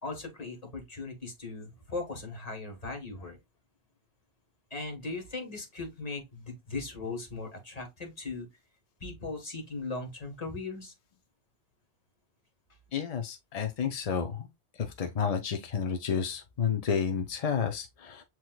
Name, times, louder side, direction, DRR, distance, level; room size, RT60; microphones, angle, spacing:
voice 1, 0.0-3.4 4.7-8.5 9.0-10.9, left 3 dB, 35° left, 1.5 m, -38 dB
voice 2, 12.9-14.5 14.8-18.2, left 7 dB, 50° left, 0.5 m, -31 dB
7.8 x 2.9 x 2.3 m
omnidirectional pair, 1.2 m